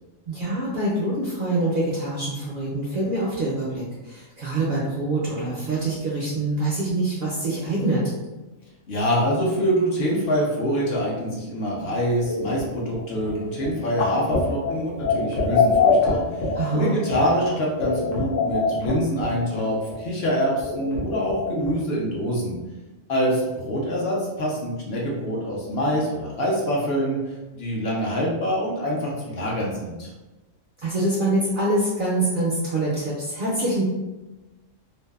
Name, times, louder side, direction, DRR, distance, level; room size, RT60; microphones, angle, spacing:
voice 1, 0.3-8.0 16.5-16.9 30.8-33.8, right 2 dB, 60° right, -6 dB, 0.5 m, -25 dB
voice 2, 8.9-16.2 16.7-22.6 23.1-27.2 27.5-30.1, equal, 60° left, -4 dB, 0.7 m, -25 dB
sound 1, 12.2-19.6 19.9-20.0 20.2-20.3 20.6-21.7, left 4 dB, 85° left, 1.0 m, -25 dB
2.6 x 2.2 x 2.2 m, 1.1 s
omnidirectional pair, 1.3 m